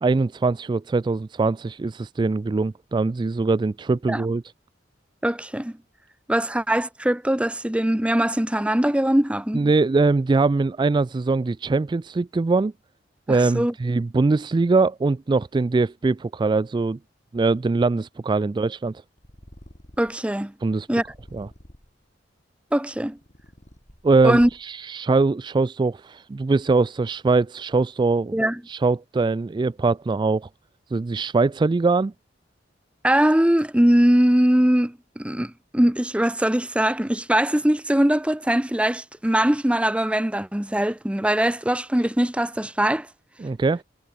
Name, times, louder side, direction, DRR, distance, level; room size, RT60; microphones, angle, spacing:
voice 1, 0.0-4.4 9.5-12.7 13.3-17.0 17.3-19.0 20.6-20.9 21.3-21.5 24.0-28.4 28.7-30.5 30.9-32.1 43.4-43.8, right 3 dB, 25° right, 0.3 m, -22 dB
voice 2, 5.2-5.8 6.3-9.6 13.3-13.7 20.0-20.5 20.9-21.1 22.7-23.2 24.2-24.5 28.3-28.6 33.0-43.1, right 1 dB, 5° right, 0.7 m, -21 dB
Purr, 19.2-20.3 20.9-22.0 22.7-24.8, equal, 40° left, 7.9 m, -48 dB
head